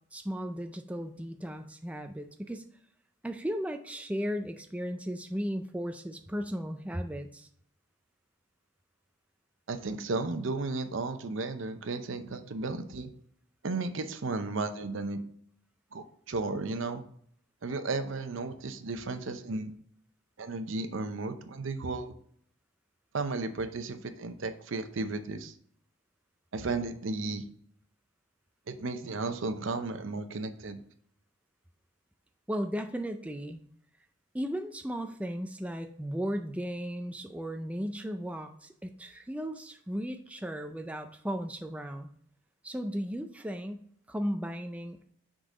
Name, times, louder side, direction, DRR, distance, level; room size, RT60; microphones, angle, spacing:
voice 1, 0.1-2.6 3.2-7.5 32.5-33.6 34.3-42.1 42.6-45.0, equal, 5° right, 6 dB, 0.3 m, -36 dB
voice 2, 9.7-13.1 13.6-15.2 15.9-17.0 17.6-19.7 20.4-22.1 23.1-25.5 26.5-27.4 28.7-30.8, right 3 dB, 75° right, 9 dB, 0.6 m, -34 dB
6.4 x 3.8 x 4.9 m, 0.63 s
head